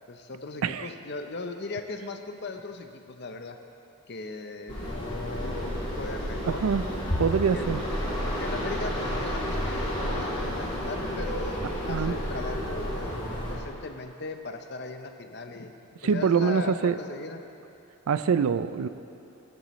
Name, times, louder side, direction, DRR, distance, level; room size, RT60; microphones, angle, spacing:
voice 1, 0.1-3.6 4.1-6.7 7.3-7.7 8.2-15.7 16.0-17.4, left 3 dB, 50° left, 6 dB, 0.7 m, -38 dB
sound 1, 4.7-13.5, equal, 25° left, 2.9 m, -31 dB
voice 2, 6.5-6.8 7.2-7.8 11.9-12.1 16.0-17.0 18.1-18.9, right 6 dB, 80° right, 13 dB, 0.4 m, -24 dB
13.5 x 12.5 x 3.1 m, 2.9 s
head